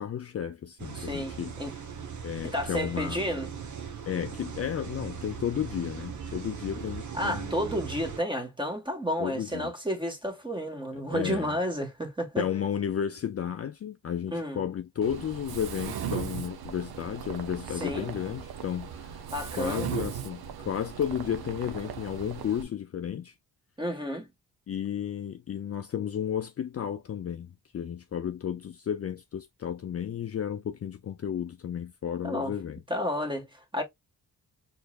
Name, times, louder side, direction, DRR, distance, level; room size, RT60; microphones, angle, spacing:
voice 1, 0.0-1.5 2.2-3.2 4.1-7.5 9.2-9.7 11.1-11.6 12.4-19.2 19.6-23.3 24.7-32.8, left 9 dB, 40° left, 0.5 m, -33 dB
sound 1, 0.8-8.2, right 6 dB, 50° right, 1.1 m, -39 dB
voice 2, 0.9-1.7 2.4-3.5 7.1-12.4 14.3-14.6 17.7-18.1 19.3-19.9 23.8-24.3 32.2-32.5 32.9-33.8, equal, 15° right, 1.6 m, -31 dB
Mechanisms, 15.0-22.6, right 8 dB, 85° right, 0.8 m, -38 dB
4.4 x 3.3 x 2.4 m
cardioid pair, 105°, 36 cm